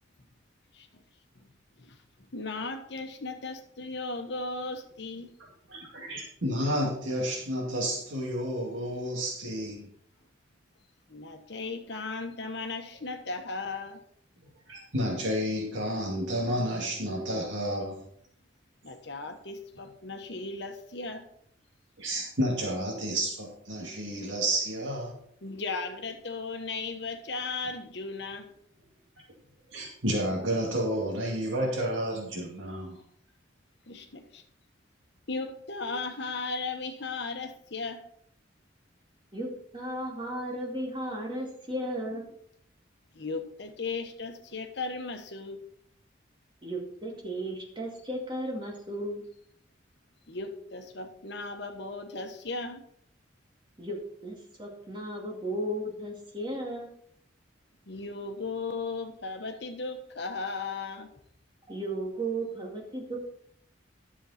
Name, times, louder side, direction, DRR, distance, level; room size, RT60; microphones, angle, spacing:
voice 1, 2.3-5.3 11.1-14.0 18.8-21.3 25.4-28.5 33.9-34.4 35.3-38.0 43.1-45.6 50.3-52.8 57.9-61.1, left 3 dB, 60° left, 1.2 m, -36 dB
voice 2, 5.7-9.8 14.7-18.0 22.0-25.1 29.7-33.0, equal, 75° right, 2.3 m, -31 dB
voice 3, 39.7-42.3 46.6-49.2 53.8-54.0 54.2-56.9 61.7-63.2, right 1 dB, 25° right, 2.3 m, -35 dB
11.0 x 7.1 x 4.2 m
head